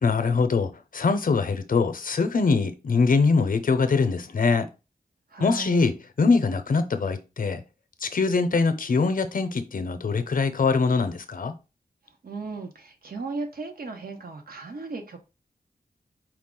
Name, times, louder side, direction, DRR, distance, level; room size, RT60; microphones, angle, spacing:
voice 1, 0.0-4.7 5.4-7.6 8.0-11.5, left 4 dB, 60° left, 0.7 m, -23 dB
voice 2, 5.3-5.9 12.2-15.2, right 3 dB, 70° right, 1.1 m, -36 dB
4.7 x 2.4 x 3.8 m
wide cardioid pair, 70°, 16 cm